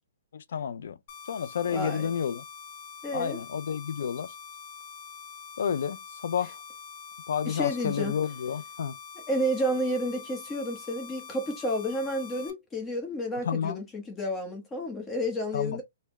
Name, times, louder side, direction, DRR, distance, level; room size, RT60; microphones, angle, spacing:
voice 1, 0.3-1.0 1.3-2.4 3.1-4.3 5.6-6.6 7.3-9.0 13.5-13.8 15.5-15.8, left 7 dB, 70° left, 0.5 m, -30 dB
sound 1, 1.1-12.5, left 6 dB, 50° left, 1.1 m, -45 dB
voice 2, 1.7-2.1 3.0-3.4 7.4-8.1 9.3-15.8, equal, 15° left, 1.0 m, -31 dB
3.5 x 2.1 x 3.1 m
hypercardioid pair, 150°, 0 cm